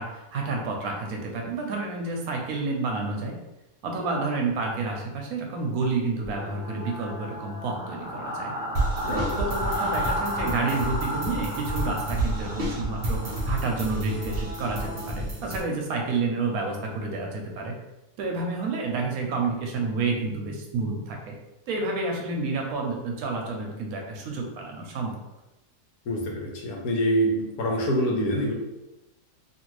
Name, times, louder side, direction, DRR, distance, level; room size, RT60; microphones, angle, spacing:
voice 1, 0.0-3.4 3.8-8.5 9.1-17.7 18.2-21.4 21.7-25.2, right 3 dB, 75° right, 1 dB, 1.0 m, -29 dB
sound 1, 6.3-15.1, equal, 5° right, 0.5 m, -33 dB
sound 2, 8.7-15.6, right 1 dB, 55° right, 0.5 m, -30 dB
voice 2, 26.1-28.5, equal, 75° left, -1 dB, 1.2 m, -25 dB
2.7 x 2.6 x 3.0 m, 0.97 s
omnidirectional pair, 1.6 m